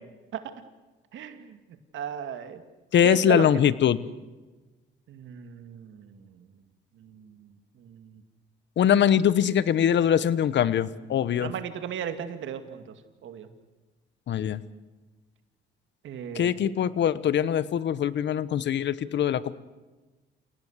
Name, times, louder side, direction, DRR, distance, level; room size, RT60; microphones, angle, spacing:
voice 1, 1.1-1.6 1.9-2.6 3.0-3.5 5.1-6.5 7.0-7.5 7.8-8.2 11.4-12.8 13.2-13.5 16.0-16.6, right 9 dB, 75° right, 9 dB, 2.4 m, -35 dB
voice 2, 2.9-4.0 8.8-11.5 14.3-14.6 16.3-19.5, left 9 dB, 65° left, 17 dB, 1.1 m, -22 dB
29.0 x 18.0 x 8.2 m, 1.2 s
cardioid pair, 90°, 20 cm